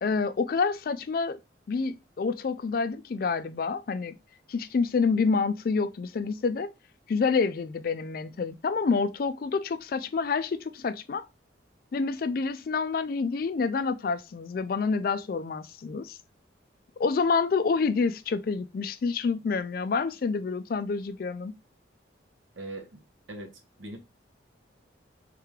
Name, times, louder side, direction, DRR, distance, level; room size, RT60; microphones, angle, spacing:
voice 1, 0.0-1.4 1.7-4.2 4.5-6.7 7.1-11.2 11.9-16.2 17.0-21.6, left 4 dB, 50° left, 0.3 m, -28 dB
voice 2, 22.6-23.0 23.3-23.5 23.8-24.0, right 1 dB, 80° right, 0.9 m, -39 dB
3.3 x 3.2 x 3.5 m
head